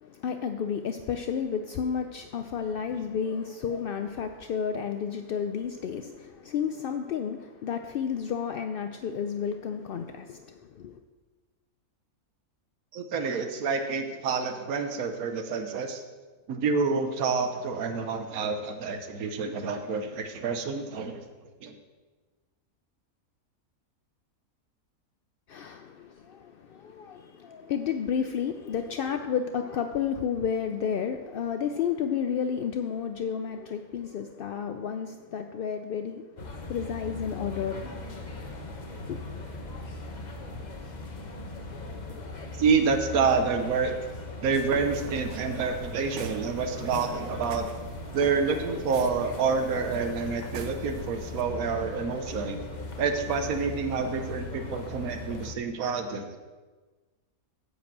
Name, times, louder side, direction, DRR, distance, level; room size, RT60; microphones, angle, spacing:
voice 1, 0.0-10.9 25.5-36.2 36.7-37.9 39.1-39.2, left 7 dB, 75° left, 7 dB, 0.5 m, -31 dB
voice 2, 12.9-16.0 16.5-21.3 21.6-21.7 42.6-44.0 44.4-47.6 48.1-56.4, right 5 dB, 85° right, 6 dB, 1.3 m, -28 dB
sound 1, 36.4-55.5, left 2 dB, 35° left, 1.1 m, -39 dB
sound 2, 44.4-51.4, right 7 dB, 65° right, 0.9 m, -44 dB
10.0 x 5.1 x 7.4 m, 1.3 s
omnidirectional pair, 1.5 m